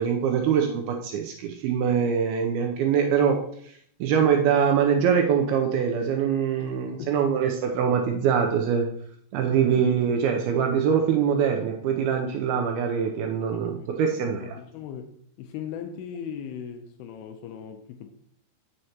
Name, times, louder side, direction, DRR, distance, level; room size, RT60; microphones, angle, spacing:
voice 1, 0.0-3.4 4.0-8.9 9.3-14.6, right 7 dB, 80° right, 3 dB, 2.3 m, -23 dB
voice 2, 13.5-15.1 15.4-18.1, left 8 dB, 80° left, 6 dB, 2.4 m, -39 dB
7.9 x 6.4 x 2.9 m, 0.63 s
omnidirectional pair, 4.9 m